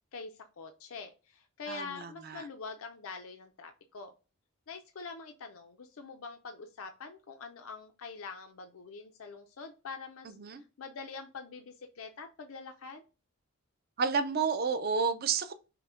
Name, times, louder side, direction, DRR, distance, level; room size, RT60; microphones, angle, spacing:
voice 1, 0.1-4.1 4.7-13.0, left 4 dB, 65° left, 0.5 m, -45 dB
voice 2, 1.7-2.4 10.2-10.6 14.0-15.5, right 5 dB, 45° right, 0.5 m, -31 dB
5.7 x 2.1 x 3.7 m
head